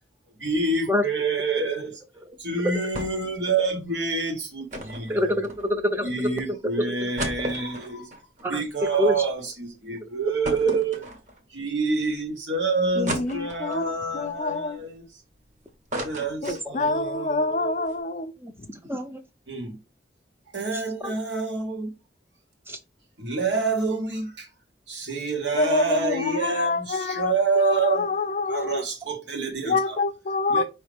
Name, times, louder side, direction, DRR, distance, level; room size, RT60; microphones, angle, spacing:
voice 1, 0.4-2.0 2.4-5.2 6.0-8.2 8.5-11.0 11.5-15.2 15.9-18.0 19.5-19.8 20.5-21.9 23.2-24.5 24.9-28.1 28.5-30.0 30.5-30.6, right 4 dB, 80° right, 1.6 m, -27 dB
sound 1, 2.9-3.4 3.6-3.7 4.7-6.0 6.5-6.6 6.9-9.4 9.7-9.8 10.4-11.6 12.1-12.2 13.1-13.9 14.4-15.4 15.7-17.0 17.4-17.5 17.7-17.9, right 1 dB, 40° right, 1.0 m, -35 dB
voice 2, 5.1-6.3 6.9-7.0 8.4-8.6 9.0-9.1 16.5-16.8 18.4-18.5 18.8-19.2 21.0-21.1 22.7-22.8, left 1 dB, 15° right, 0.6 m, -26 dB
voice 3, 13.0-14.8 16.4-18.3 25.5-28.8 29.6-30.6, left 3 dB, 40° left, 0.5 m, -26 dB
5.0 x 3.1 x 3.3 m
head